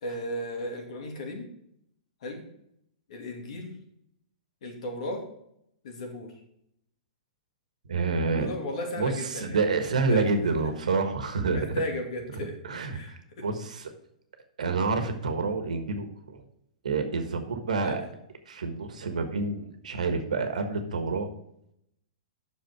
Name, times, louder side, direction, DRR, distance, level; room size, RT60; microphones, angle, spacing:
voice 1, 0.0-1.5 2.2-2.4 3.1-3.8 4.6-5.2 5.8-6.4 8.3-9.8 10.1-10.3 10.6-10.7 11.5-12.6 12.9-13.5 17.8-18.0, left 1 dB, 65° left, 2 dB, 2.6 m, -35 dB
voice 2, 7.9-8.5 9.0-11.8 12.7-13.0 13.4-13.9 14.6-16.1 16.3-16.4 16.8-18.0 18.5-21.3, right 4 dB, 80° right, 7 dB, 1.4 m, -28 dB
7.9 x 6.6 x 4.7 m, 0.74 s
hypercardioid pair, 120°, 4 cm